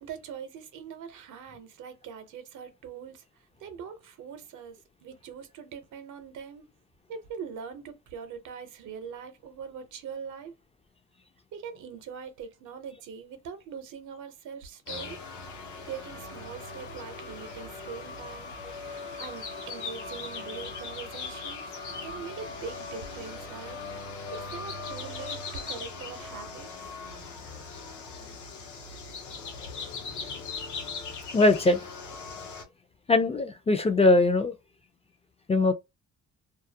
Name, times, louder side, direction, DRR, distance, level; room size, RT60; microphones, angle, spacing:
voice 1, 0.0-3.2 3.6-6.7 7.1-10.6 11.5-15.2 15.9-21.6 22.0-26.7, right 6 dB, 80° right, 0.7 m, -42 dB
sound 1, 14.9-32.6, left 4 dB, 75° left, 0.8 m, -39 dB
voice 2, 31.3-31.8 33.1-34.5 35.5-35.7, left 2 dB, 20° left, 0.3 m, -21 dB
2.3 x 2.0 x 2.7 m
cardioid pair, 90°, 30 cm